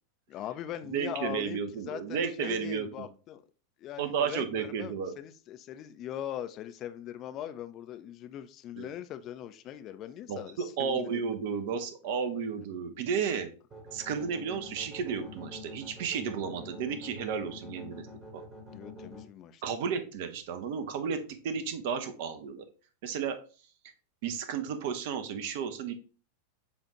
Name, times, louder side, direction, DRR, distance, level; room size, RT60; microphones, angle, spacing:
voice 1, 0.3-1.6 1.9-3.4 3.8-11.2 18.7-19.6, left 11 dB, 35° left, 10 dB, 0.4 m, -40 dB
voice 2, 0.9-3.1 4.0-5.1 8.8-8.9 10.3-13.5 13.9-18.1 18.3-18.4 19.6-22.7 23.0-23.4 24.2-25.9, right 6 dB, 50° right, 9 dB, 0.7 m, -33 dB
sound 1, 13.7-19.2, equal, 30° right, 1.4 m, -47 dB
6.9 x 2.5 x 3.0 m, 0.37 s
figure-of-eight pair, 90°, 0 cm